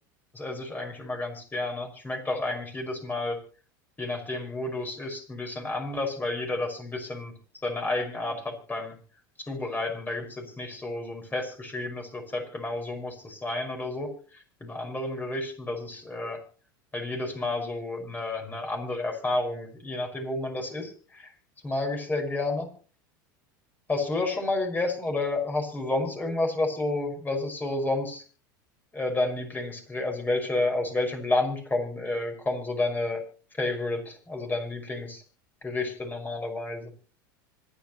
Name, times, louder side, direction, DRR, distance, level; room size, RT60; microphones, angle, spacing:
voice 1, 0.3-3.4 4.0-7.3 7.6-9.0 9.5-16.4 16.9-21.3 21.6-22.7 23.9-28.2 28.9-33.2 33.5-35.2 35.6-36.9, left 2 dB, 15° left, 3 dB, 5.6 m, -30 dB
26.0 x 9.8 x 3.1 m, 0.39 s
hypercardioid pair, 100°, 11 cm